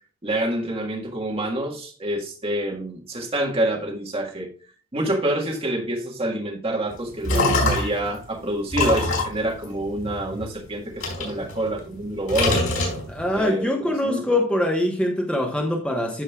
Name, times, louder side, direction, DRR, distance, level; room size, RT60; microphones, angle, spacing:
voice 1, 0.2-4.5 4.9-12.7 13.3-14.4, right 1 dB, 25° right, 1.7 m, -27 dB
sound 1, 6.9-8.1 8.7-10.5 11.0-12.0 12.3-13.4, left 2 dB, 80° left, 4.6 m, -24 dB
voice 2, 13.1-16.2, left 1 dB, 5° left, 1.1 m, -23 dB
14.0 x 5.3 x 2.4 m
head